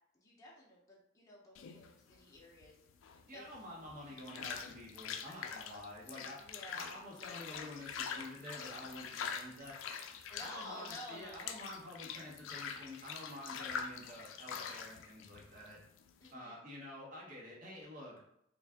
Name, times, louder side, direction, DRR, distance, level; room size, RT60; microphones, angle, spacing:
voice 1, 0.1-2.8 3.1-3.4 3.9-4.2 6.4-6.9 10.3-11.5 16.2-16.6, left 1 dB, 15° left, -5 dB, 0.7 m, -51 dB
sound 1, 1.5-16.3, left 6 dB, 80° left, 0.3 m, -45 dB
voice 2, 3.3-6.4 6.7-9.7 10.4-15.8 16.3-18.2, left 1 dB, 45° right, -3 dB, 1.0 m, -49 dB
3.3 x 2.5 x 3.5 m, 0.76 s
head